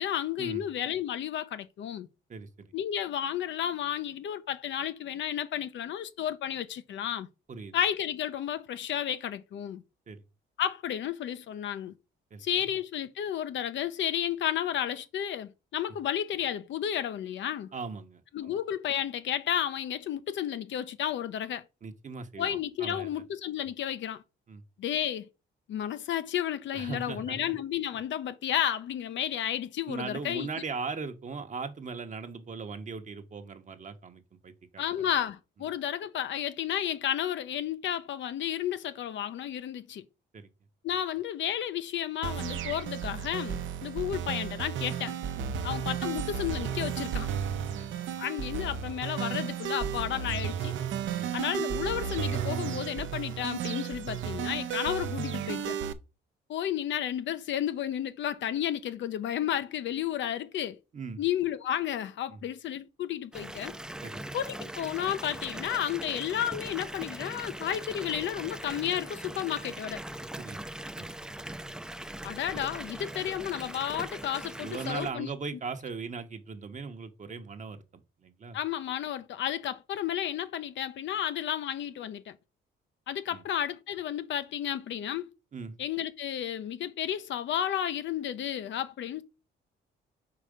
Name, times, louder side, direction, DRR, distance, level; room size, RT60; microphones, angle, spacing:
voice 1, 0.0-2.1 2.7-7.3 7.7-9.8 10.6-11.9 12.4-17.7 18.3-21.6 22.4-24.2 24.8-25.3 25.7-30.5 34.8-40.0 40.8-45.2 45.6-47.3 48.2-50.7 51.3-55.8 56.5-60.8 61.2-63.7 64.3-70.0 72.2-75.3 78.5-82.4 83.1-85.3 85.8-89.2, left 10 dB, 70° left, 0.7 m, -32 dB
voice 2, 2.3-2.7 7.5-7.8 10.1-10.2 12.3-12.4 17.7-18.6 21.8-23.1 24.5-24.6 26.7-27.5 29.9-35.1 40.3-40.5 45.4-45.6 47.6-48.2 51.1-51.3 60.9-61.2 62.3-62.4 64.0-64.2 70.4-70.6 71.0-71.1 74.6-78.6 83.3-83.4 85.5-85.8, right 4 dB, 40° right, 0.9 m, -39 dB
sound 1, 42.2-55.9, right 8 dB, 75° right, 0.7 m, -33 dB
Water tap faucet / Bathtub (filling or washing) / Fill (with liquid), 63.3-75.1, right 1 dB, 5° right, 0.5 m, -41 dB
4.8 x 4.5 x 5.1 m
cardioid pair, 90°, 20 cm